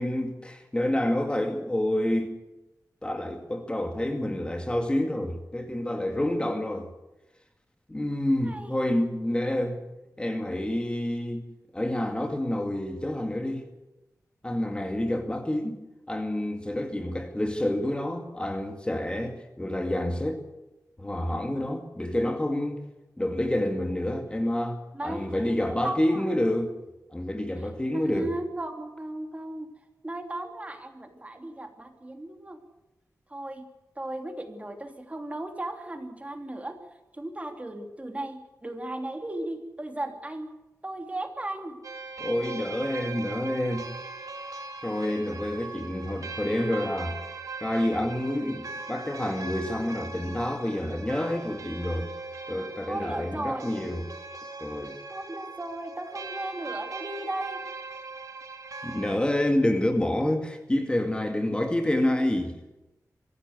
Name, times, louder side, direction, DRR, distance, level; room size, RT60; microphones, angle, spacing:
voice 1, 0.0-2.3 3.0-6.9 7.9-9.8 10.2-11.4 11.7-13.6 14.4-15.8 16.1-20.4 21.0-22.8 23.2-26.7 27.1-28.3 42.2-43.9 44.8-47.2 47.6-52.1 52.5-54.1 54.6-55.0 58.8-62.6, left 1 dB, 15° left, 2.2 m, -28 dB
voice 2, 24.9-26.2 27.9-29.7 30.0-32.6 33.3-33.6 34.0-36.8 37.1-40.5 40.8-41.8 52.9-53.7 55.1-57.6, right 1 dB, 20° right, 3.1 m, -36 dB
sound 1, 41.8-59.2, right 3 dB, 65° right, 3.3 m, -40 dB
24.0 x 16.0 x 8.1 m
wide cardioid pair, 105°, 6 cm